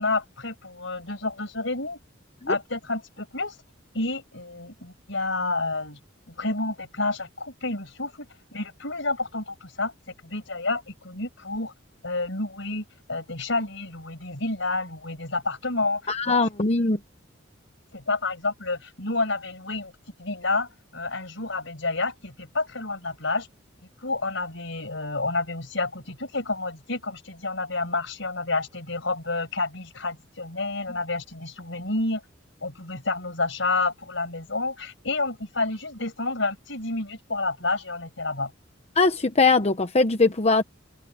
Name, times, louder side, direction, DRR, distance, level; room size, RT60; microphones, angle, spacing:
voice 1, 0.0-2.0 2.5-3.6 3.9-6.0 6.4-8.3 8.5-9.9 10.2-11.7 12.0-16.3 16.6-16.9 17.9-19.9 20.2-23.5 24.0-32.2 32.6-38.5, left 3 dB, 70° left, 5.7 m, -29 dB
voice 2, 16.1-17.0 38.9-40.6, left 3 dB, 35° left, 0.9 m, -21 dB
head